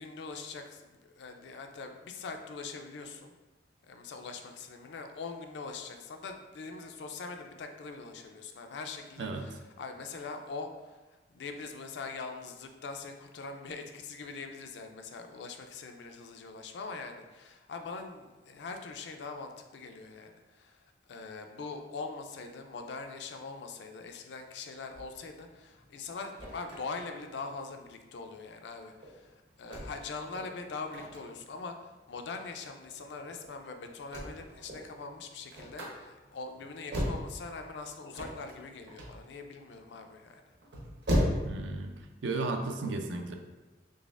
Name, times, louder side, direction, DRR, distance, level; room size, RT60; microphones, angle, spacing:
voice 1, 0.0-3.3 3.9-11.0 11.3-40.4, left 4 dB, 70° left, 5 dB, 0.4 m, -42 dB
sound 1, 24.9-41.7, equal, 70° right, 0.9 m, -37 dB
voice 2, 41.5-42.0 42.2-43.3, right 3 dB, 90° right, 5 dB, 0.4 m, -34 dB
3.9 x 3.3 x 2.4 m, 1.2 s
head